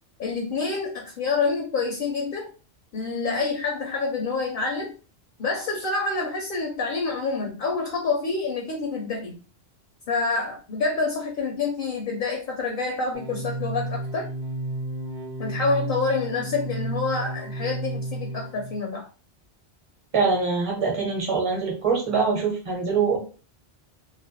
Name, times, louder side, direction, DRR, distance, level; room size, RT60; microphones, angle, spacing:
voice 1, 0.2-2.5 2.9-4.9 5.4-9.4 10.1-14.3 15.4-19.1, left 4 dB, 60° left, 1 dB, 0.6 m, -27 dB
sound 1, 13.1-18.8, right 1 dB, 70° right, 0.8 m, -32 dB
voice 2, 20.1-23.2, right 5 dB, 35° right, 0 dB, 0.8 m, -23 dB
2.3 x 2.1 x 2.6 m, 0.35 s
omnidirectional pair, 1.2 m